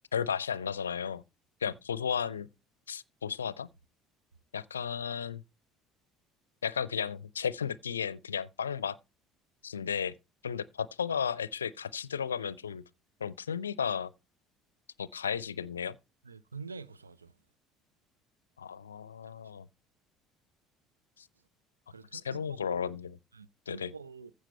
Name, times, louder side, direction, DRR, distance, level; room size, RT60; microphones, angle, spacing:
voice 1, 0.1-1.2 1.6-2.5 2.9-3.7 4.5-5.4 6.6-9.0 9.6-10.1 10.4-12.8 13.2-14.1 15.0-16.0 18.6-19.7 21.2-21.3 22.1-23.2 23.7-23.9, left 7 dB, 80° left, 0.5 m, -34 dB
voice 2, 16.3-17.3 21.9-22.8 23.4-24.3, right 5 dB, 80° right, 0.5 m, -46 dB
15.0 x 5.1 x 4.3 m
figure-of-eight pair, 60°, 0 cm